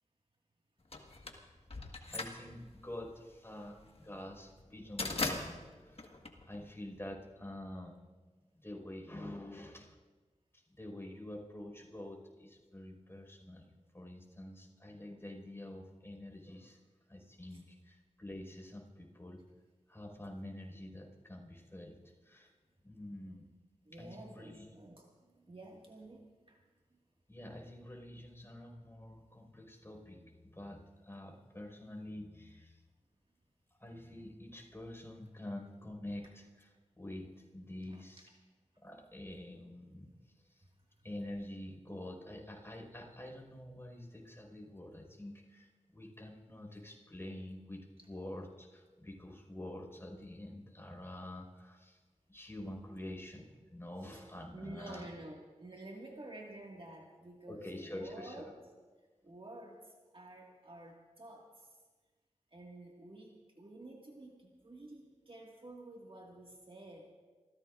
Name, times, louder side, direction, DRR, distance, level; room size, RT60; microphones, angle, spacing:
sound 1, 0.9-7.1, left 2 dB, 50° left, 1.6 m, -40 dB
voice 1, 2.0-8.1 8.5-9.9 10.5-16.8 17.1-19.4 19.9-22.5 22.8-23.5 23.9-24.7 27.3-30.2 30.5-32.8 33.8-38.3 38.8-40.6 41.0-52.0 52.3-55.1 57.5-58.5, left 1 dB, 20° left, 1 dB, 5.2 m, -47 dB
voice 2, 23.9-26.6 26.9-27.0 37.8-38.0 54.1-54.2 54.5-58.6 59.2-59.8 60.1-61.8 62.5-67.1, right 1 dB, 45° right, -1 dB, 2.0 m, -51 dB
28.5 x 15.5 x 2.6 m, 1.3 s
cardioid pair, 45°, 13 cm